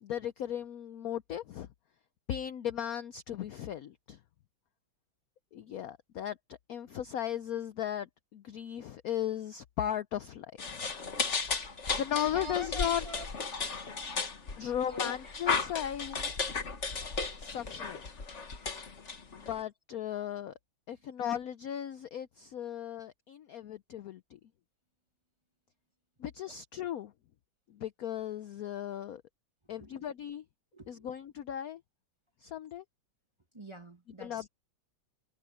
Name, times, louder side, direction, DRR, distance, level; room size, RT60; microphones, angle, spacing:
voice 1, 0.0-1.7 2.3-4.2 5.5-10.9 11.9-13.0 14.6-16.3 17.4-18.1 19.4-20.5 20.9-24.4 26.2-27.1 27.7-29.2 29.7-30.4 30.9-31.8 32.4-32.8 34.2-34.5, left 10 dB, 70° left, 0.8 m, -36 dB
sound 1, 10.6-19.6, left 4 dB, 35° left, 1.9 m, -35 dB
voice 2, 12.3-13.3 14.8-15.3 16.1-16.2 29.8-30.0 30.7-31.1 33.5-34.5, left 1 dB, 15° right, 1.2 m, -46 dB
omnidirectional pair, 2.2 m